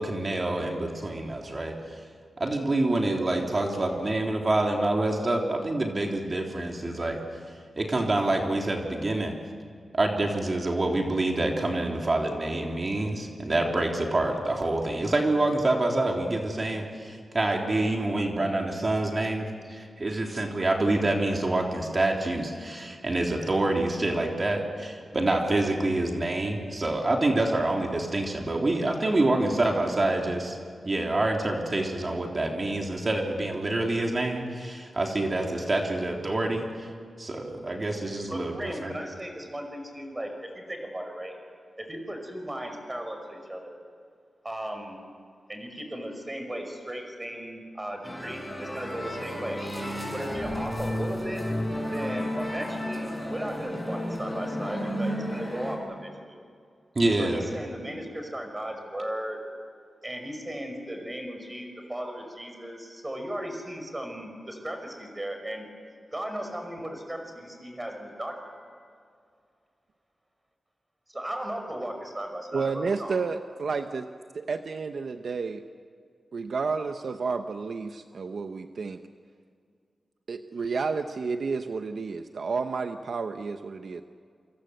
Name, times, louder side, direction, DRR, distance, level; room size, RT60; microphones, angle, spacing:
voice 1, 0.0-2.0 2.4-7.2 7.8-9.3 9.9-30.6 30.8-36.9 37.2-38.9 56.9-57.4, right 2 dB, 35° right, 1 dB, 3.4 m, -27 dB
voice 2, 38.3-41.3 41.8-43.8 44.4-45.0 45.5-49.6 50.1-51.4 51.8-56.4 57.2-59.4 60.0-65.7 66.1-68.6 71.1-73.1, right 1 dB, 15° right, 4 dB, 5.8 m, -36 dB
sound 1, 48.0-55.8, equal, 5° left, 7.7 m, -32 dB
voice 3, 72.5-74.1 74.3-75.6 76.3-79.0 80.3-84.0, right 4 dB, 65° right, 7 dB, 0.9 m, -31 dB
28.0 x 26.0 x 8.1 m, 2.2 s
wide cardioid pair, 120°, 0 cm